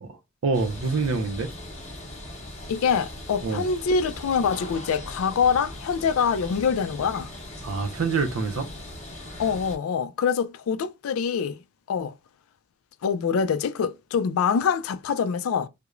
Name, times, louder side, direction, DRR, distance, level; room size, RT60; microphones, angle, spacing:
voice 1, 0.4-1.5 3.4-3.6 7.6-8.7, right 4 dB, 75° right, 0.5 m, -26 dB
sound 1, 0.5-9.8, left 1 dB, 35° left, 0.8 m, -40 dB
voice 2, 2.7-7.3 9.4-11.6 11.9-12.1 13.0-15.7, left 6 dB, 85° left, 0.3 m, -25 dB
3.0 x 2.0 x 2.3 m
head